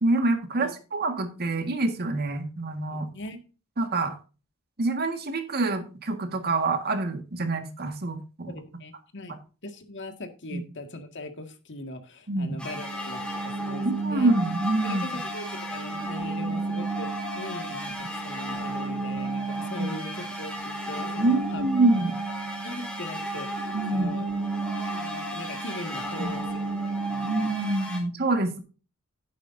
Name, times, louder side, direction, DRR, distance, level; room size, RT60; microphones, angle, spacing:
voice 1, 0.0-3.1 3.8-4.1 4.8-8.5 10.5-10.6 12.3-12.6 13.8-15.0 19.7-19.9 21.2-22.1 23.7-24.1 26.2-26.3 27.2-28.6, right 2 dB, 50° right, 6 dB, 1.7 m, -26 dB
voice 2, 2.9-3.4 8.4-9.3 9.6-13.2 13.6-14.3 14.8-21.6 21.9-22.2 22.6-24.3 24.8-27.7, left 1 dB, 60° left, 6 dB, 1.9 m, -40 dB
sound 1, 12.6-28.0, right 2 dB, 5° left, 3.0 m, -32 dB
11.5 x 9.7 x 2.7 m, 0.34 s
head